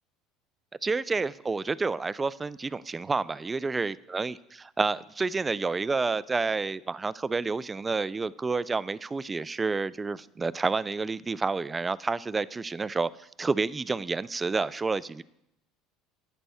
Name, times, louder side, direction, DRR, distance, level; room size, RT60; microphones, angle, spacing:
voice 1, 0.8-13.1 13.4-15.2, right 4 dB, 20° right, 19 dB, 0.3 m, -29 dB
11.0 x 9.1 x 3.5 m, 0.83 s
hypercardioid pair, 85°, 0 cm